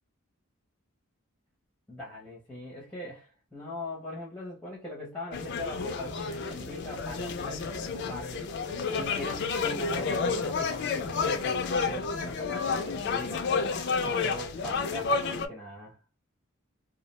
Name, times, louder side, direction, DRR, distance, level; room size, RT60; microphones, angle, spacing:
voice 1, 1.9-8.5 9.0-13.4 14.0-16.0, left 1 dB, 5° left, 0.6 m, -41 dB
sound 1, 5.3-15.5, left 4 dB, 50° left, 0.4 m, -30 dB
2.3 x 2.1 x 2.9 m
head